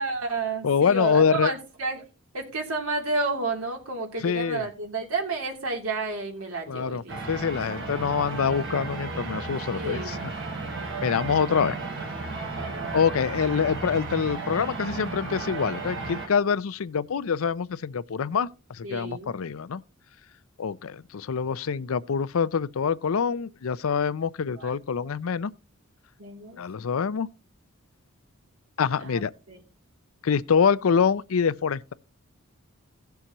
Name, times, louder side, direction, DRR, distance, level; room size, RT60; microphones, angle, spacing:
voice 1, 0.0-2.0 2.3-7.2 7.5-7.6 9.7-10.2 11.5-11.6 12.5-13.0 18.8-19.3 24.6-24.7 26.2-26.6 29.0-29.2 29.5-29.6, right 3 dB, 85° right, 3.0 m, -31 dB
voice 2, 0.6-1.5 4.2-4.6 6.7-10.2 11.0-11.8 12.9-19.8 20.6-25.5 26.6-27.3 28.8-29.3 30.2-31.9, left 6 dB, 75° left, 0.5 m, -25 dB
sound 1, 7.1-16.3, right 3 dB, 60° right, 4.1 m, -34 dB
17.0 x 7.0 x 3.0 m
head